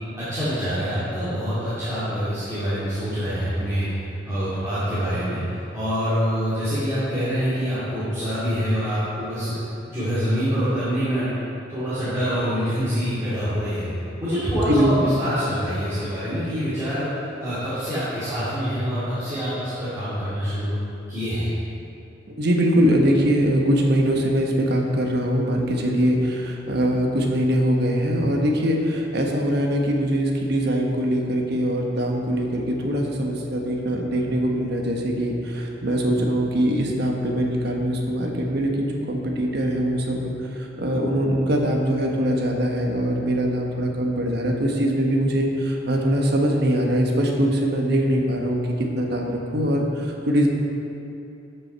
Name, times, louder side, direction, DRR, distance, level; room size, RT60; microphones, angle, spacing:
voice 1, 0.2-9.6 9.9-11.3 11.7-13.9 14.2-20.7 21.1-21.5, equal, 15° right, -14 dB, 2.3 m, -25 dB
voice 2, 14.7-15.2 22.4-50.5, equal, 60° right, 1 dB, 1.1 m, -22 dB
13.0 x 5.6 x 4.5 m, 2.8 s
head